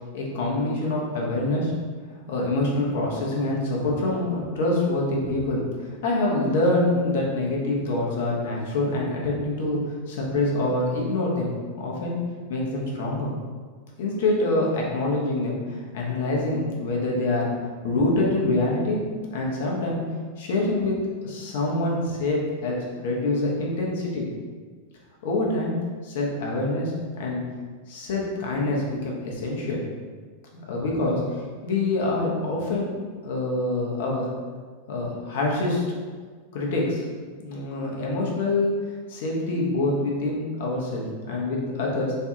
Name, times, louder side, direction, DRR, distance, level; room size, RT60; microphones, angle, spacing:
voice 1, 0.1-1.7 2.3-12.2 12.5-13.3 14.0-17.5 17.8-19.0 19.3-20.0 20.4-21.0 21.2-24.3 25.2-25.8 26.0-27.4 27.9-29.8 30.5-32.9 33.2-34.3 34.9-35.8 36.5-37.1 37.4-38.8 39.1-42.1, left 2 dB, 55° left, -2 dB, 0.7 m, -25 dB
3.3 x 2.2 x 2.8 m, 1.5 s
figure-of-eight pair, 90°, 0 cm